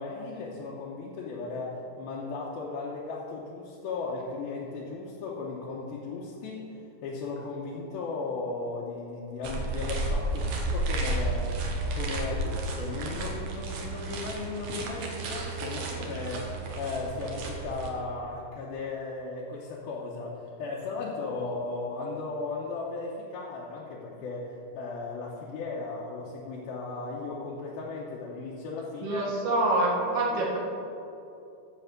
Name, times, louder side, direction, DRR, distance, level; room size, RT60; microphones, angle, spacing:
voice 1, 0.0-11.5 11.9-29.3 30.3-30.4, left 3 dB, 75° left, -5 dB, 2.7 m, -36 dB
sound 1, 9.4-17.9, right 2 dB, 65° right, 1.9 m, -32 dB
voice 2, 29.0-30.6, right 2 dB, 50° right, -3 dB, 2.3 m, -26 dB
12.5 x 4.8 x 7.3 m, 2.8 s
omnidirectional pair, 4.6 m